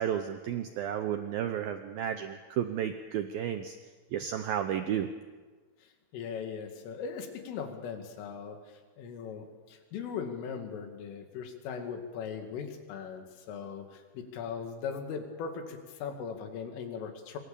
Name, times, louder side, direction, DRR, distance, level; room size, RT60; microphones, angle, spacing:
voice 1, 0.0-3.8 4.1-5.1, right 9 dB, 85° right, 8 dB, 2.1 m, -32 dB
voice 2, 5.8-17.4, left 6 dB, 85° left, 5 dB, 4.8 m, -39 dB
27.0 x 24.0 x 7.0 m, 1.4 s
omnidirectional pair, 5.6 m